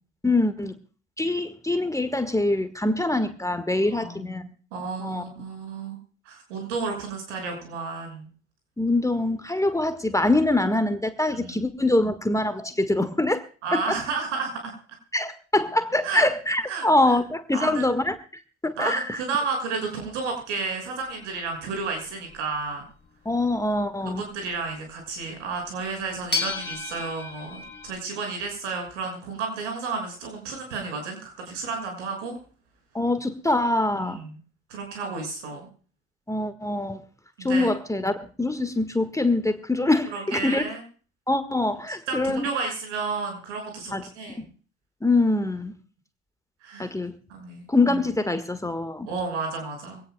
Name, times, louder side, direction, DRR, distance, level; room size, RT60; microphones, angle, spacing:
voice 1, 0.2-0.7 1.2-4.4 5.0-5.2 8.8-13.4 13.7-14.0 15.1-19.2 23.2-24.2 32.9-34.2 36.3-37.0 37.4-40.6 41.3-42.5 43.9-44.0 44.4-44.5 45.0-45.7 46.8-47.1 47.7-49.1, left 2 dB, 10° left, 9 dB, 1.6 m, -24 dB
voice 2, 3.9-6.0 6.2-8.3 11.3-11.6 13.6-14.7 16.0-16.2 16.7-16.8 17.5-17.8 18.8-22.8 24.2-32.4 33.9-34.4 34.7-35.6 37.4-37.7 40.1-40.8 42.1-44.5 46.6-46.9 47.3-47.7 49.1-50.0, right 4 dB, 75° right, 3 dB, 6.5 m, -32 dB
sound 1, 21.1-22.7 25.4-25.5 26.3-28.0, left 4 dB, 30° left, 3.2 m, -32 dB
24.0 x 17.5 x 2.3 m, 0.39 s
figure-of-eight pair, 60°, 36 cm